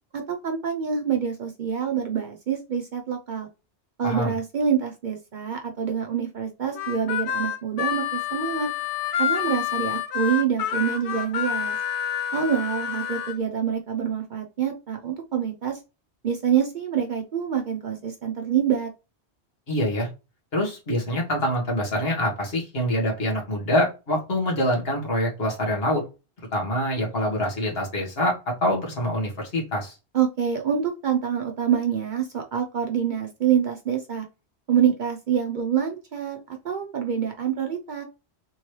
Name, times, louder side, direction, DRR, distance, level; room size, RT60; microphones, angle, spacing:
voice 1, 0.1-3.5 4.0-8.7 9.2-11.8 12.3-15.8 16.2-18.9 30.1-34.3 34.7-38.0, right 8 dB, 55° right, 3 dB, 0.6 m, -26 dB
voice 2, 4.0-4.3 19.7-20.1 20.5-26.0 26.5-30.0, left 1 dB, 60° left, -2 dB, 1.6 m, -25 dB
Harmonica, 6.8-13.3, left 9 dB, 80° left, 0.9 m, -28 dB
3.6 x 3.0 x 3.0 m, 0.29 s
omnidirectional pair, 1.1 m